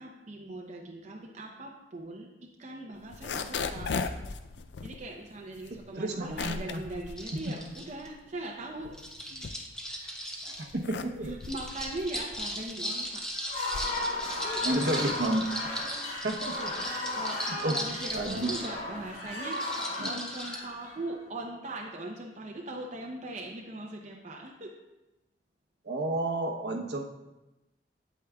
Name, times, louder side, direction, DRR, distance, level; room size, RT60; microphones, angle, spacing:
voice 1, 0.0-2.3 2.6-3.9 4.8-9.0 9.9-10.1 11.2-13.2 14.4-14.8 16.8-24.7, right 2 dB, 40° right, -1 dB, 0.7 m, -40 dB
sound 1, 3.0-8.3 8.6-10.1 10.5-19.3, left 4 dB, 70° left, 0.4 m, -39 dB
voice 2, 5.7-6.8 7.3-7.6 9.3-9.5 10.4-11.4 14.6-15.7 16.2-16.8 17.5-17.8 18.1-18.5 19.2-19.4 20.0-20.1 25.8-27.0, right 1 dB, 65° right, 2 dB, 0.9 m, -32 dB
sound 2, 7.2-8.1 8.9-10.7 11.4-18.7 19.5-20.6, equal, 5° left, 0.8 m, -37 dB
sound 3, 13.3-21.4, left 2 dB, 50° left, 2.7 m, -36 dB
8.5 x 8.3 x 2.3 m, 1.0 s
head